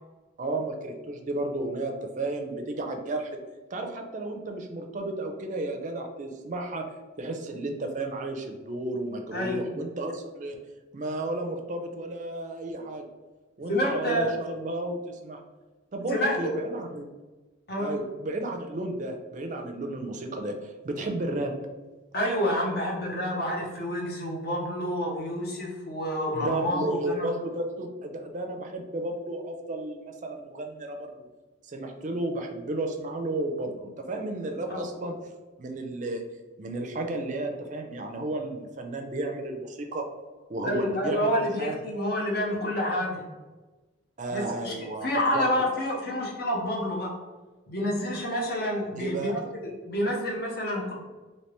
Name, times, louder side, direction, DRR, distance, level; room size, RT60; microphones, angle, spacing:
voice 1, 0.4-3.4 3.7-6.9 7.2-10.6 10.9-13.0 13.6-15.4 15.9-17.0 17.8-21.5 26.3-31.3 31.6-35.2 35.6-36.2 36.6-40.1 40.5-41.8 44.2-45.5 49.0-49.3, right 2 dB, 40° right, 4 dB, 0.4 m, -33 dB
voice 2, 9.3-9.6 13.7-14.3 16.1-16.4 17.7-18.0 22.1-27.3 34.7-34.8 40.6-43.2 44.3-44.7 45.0-47.1 47.7-50.9, equal, 50° left, -1 dB, 0.8 m, -28 dB
3.2 x 2.8 x 3.0 m, 1.2 s
head